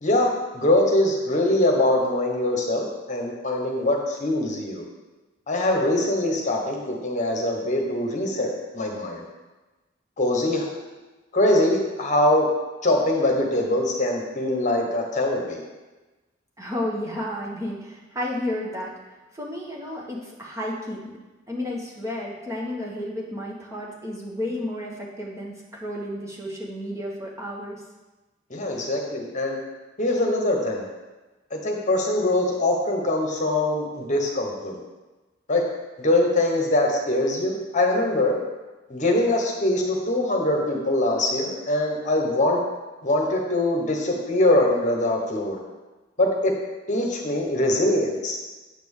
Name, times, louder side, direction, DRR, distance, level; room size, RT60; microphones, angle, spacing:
voice 1, 0.0-4.8 5.5-9.2 10.2-10.7 11.3-12.5 12.8-15.6 28.5-29.6 30.0-30.9 31.5-34.8 35.5-35.6 36.0-38.4 38.9-42.6 43.0-45.6 46.2-46.5 46.9-48.4, left 1 dB, 40° left, 1 dB, 1.3 m, -23 dB
voice 2, 16.6-18.9 19.3-21.2 21.5-27.8, left 1 dB, 15° right, -4 dB, 1.5 m, -32 dB
9.1 x 4.4 x 7.3 m, 1.2 s
head